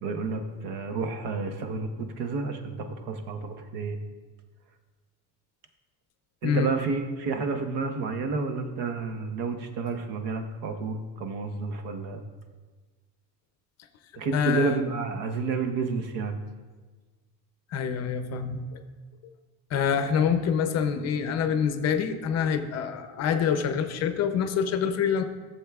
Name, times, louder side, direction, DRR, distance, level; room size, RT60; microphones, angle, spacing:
voice 1, 0.0-4.0 6.4-12.2 14.2-16.4, right 4 dB, 85° right, 6 dB, 1.0 m, -30 dB
voice 2, 14.2-14.8 17.7-18.8 19.7-25.2, left 7 dB, 40° left, 9 dB, 0.6 m, -26 dB
15.0 x 7.2 x 2.3 m, 1.3 s
cardioid pair, 160°, 40 cm